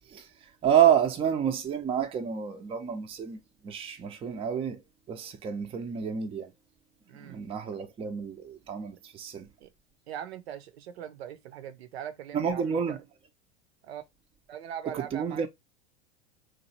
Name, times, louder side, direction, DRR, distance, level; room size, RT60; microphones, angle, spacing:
voice 1, 0.6-4.8 5.1-6.5 7.2-9.5 12.3-13.0 14.9-15.5, right 9 dB, 15° right, 0.5 m, -28 dB
voice 2, 7.1-7.4 9.6-9.7 10.1-13.0 13.8-14.0 14.5-15.5, right 9 dB, 65° right, 0.7 m, -41 dB
3.0 x 2.6 x 4.2 m
figure-of-eight pair, 90°, 34 cm